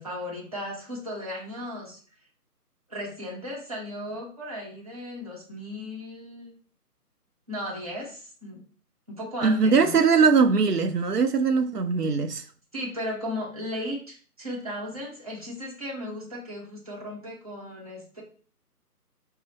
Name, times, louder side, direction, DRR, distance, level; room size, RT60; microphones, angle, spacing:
voice 1, 0.0-2.0 2.9-6.6 7.5-8.6 9.1-10.0 12.7-18.2, left 1 dB, 25° right, 0.8 m, -36 dB
voice 2, 9.4-12.5, right 5 dB, 75° right, 0.6 m, -21 dB
5.6 x 2.0 x 4.1 m
figure-of-eight pair, 155°, 48 cm